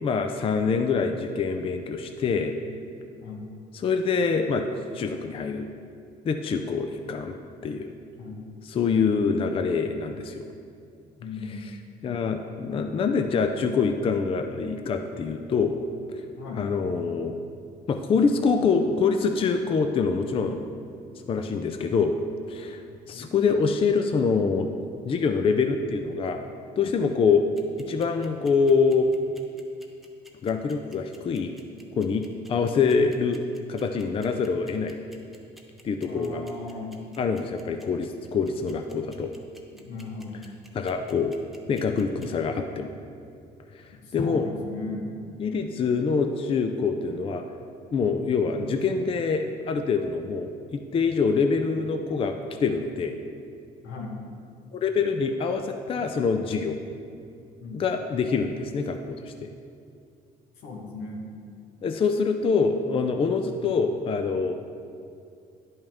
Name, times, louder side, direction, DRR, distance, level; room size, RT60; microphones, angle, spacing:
voice 1, 0.0-2.5 3.8-4.6 4.9-5.7 6.2-7.3 7.6-7.9 8.7-10.4 12.0-15.8 16.1-16.2 16.6-17.4 17.9-20.7 21.3-22.1 22.5-22.8 23.1-24.7 25.0-26.4 26.8-27.5 27.8-29.1 30.4-31.5 32.0-33.4 33.7-35.0 35.8-36.4 37.2-39.3 40.7-41.4 41.7-42.9 43.7-44.4 45.4-47.4 47.9-52.3 52.6-53.1 54.7-56.8 57.7-59.5 61.8-64.5, left 5 dB, 35° left, 6 dB, 0.4 m, -25 dB
voice 2, 3.1-3.5 8.1-8.4 9.1-9.3 11.2-11.7 16.4-16.7 23.1-23.3 36.1-37.0 39.7-40.4 43.9-45.2 48.2-48.8 53.8-54.2 57.6-57.8 60.5-61.3 63.5-63.8, left 3 dB, 85° left, 0 dB, 1.4 m, -37 dB
sound 1, 27.6-42.3, right 1 dB, ahead, 0.8 m, -52 dB
10.5 x 5.4 x 3.5 m, 2.4 s
cardioid pair, 110°, 17 cm